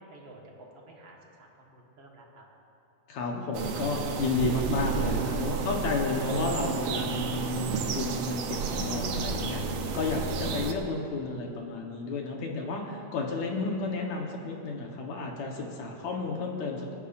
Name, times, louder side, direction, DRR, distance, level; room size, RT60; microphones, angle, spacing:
voice 1, 0.0-2.4, right 1 dB, 50° right, -1 dB, 1.6 m, -51 dB
voice 2, 3.1-9.6 9.9-17.0, left 3 dB, 65° left, 1 dB, 2.2 m, -32 dB
sound 1, 3.5-10.7, right 5 dB, 85° right, 1.4 m, -31 dB
27.5 x 9.9 x 2.5 m, 2.7 s
omnidirectional pair, 3.9 m